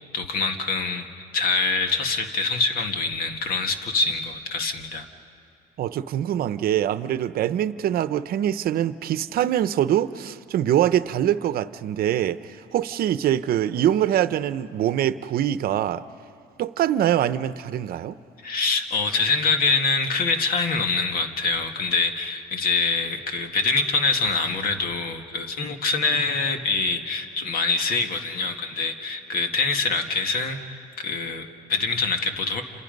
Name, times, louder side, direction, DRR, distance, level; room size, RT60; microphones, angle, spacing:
voice 1, 0.1-1.0 1.3-5.1 18.4-32.6, left 4 dB, 60° left, 5 dB, 2.0 m, -25 dB
voice 2, 5.8-16.0 16.6-18.2, right 11 dB, 60° right, 14 dB, 0.8 m, -24 dB
30.0 x 27.5 x 5.3 m, 2.7 s
cardioid pair, 110°, 17 cm